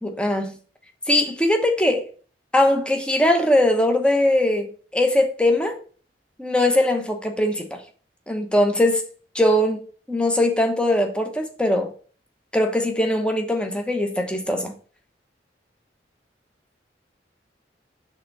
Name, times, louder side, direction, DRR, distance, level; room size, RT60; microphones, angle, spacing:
voice 1, 0.0-0.6 1.1-2.1 2.5-5.7 6.4-7.8 8.3-9.0 9.3-9.8 10.1-11.9 12.5-14.7, left 1 dB, 5° left, 0.8 m, -21 dB
5.6 x 3.6 x 5.4 m
head